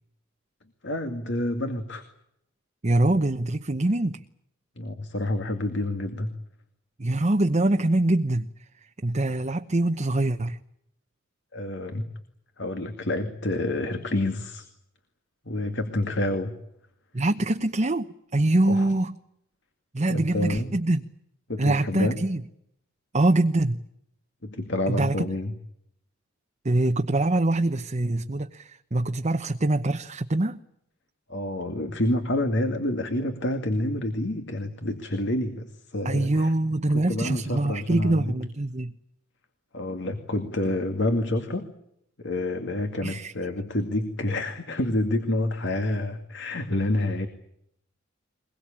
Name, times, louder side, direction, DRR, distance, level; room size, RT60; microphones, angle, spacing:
voice 1, 0.8-2.0 4.8-6.3 11.5-12.0 12.6-14.7 15.4-16.5 18.7-18.8 20.1-20.7 21.5-22.3 24.4-25.5 31.3-36.5 36.9-38.3 39.7-41.7 42.2-47.3, left 1 dB, 65° left, 7 dB, 2.3 m, -28 dB
voice 2, 2.8-4.2 7.0-8.5 9.0-10.6 17.1-19.2 19.9-21.0 21.6-22.4 23.1-23.8 24.9-25.1 26.6-30.6 36.0-38.9 43.0-43.3, right 2 dB, 35° right, 5 dB, 0.9 m, -24 dB
22.5 x 22.0 x 8.8 m, 0.75 s
head